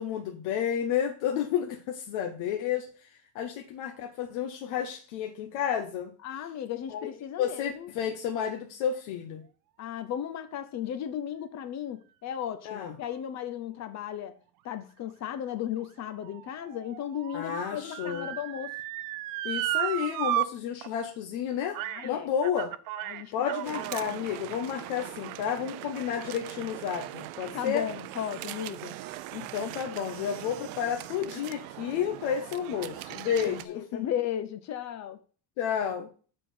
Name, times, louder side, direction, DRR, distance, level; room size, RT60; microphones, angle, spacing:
voice 1, 0.0-3.1 3.3-6.1 6.9-7.1 7.4-9.4 12.6-12.9 17.3-18.3 19.4-22.7 23.3-27.9 29.3-34.1 35.6-36.1, left 8 dB, 75° left, 1.2 m, -31 dB
voice 2, 6.2-7.9 9.8-14.3 14.6-18.8 21.8-22.3 23.0-23.9 27.5-29.0 33.7-35.2, left 10 dB, 40° left, 0.6 m, -35 dB
Motor vehicle (road) / Siren, 15.3-20.5 20.8-20.9 21.7-22.1 22.4-24.1 24.8-24.9, right 14 dB, 50° right, 0.5 m, -34 dB
sound 1, 23.6-33.7, right 16 dB, 85° right, 0.7 m, -41 dB
7.4 x 4.3 x 6.5 m
cardioid pair, 170°, 45 cm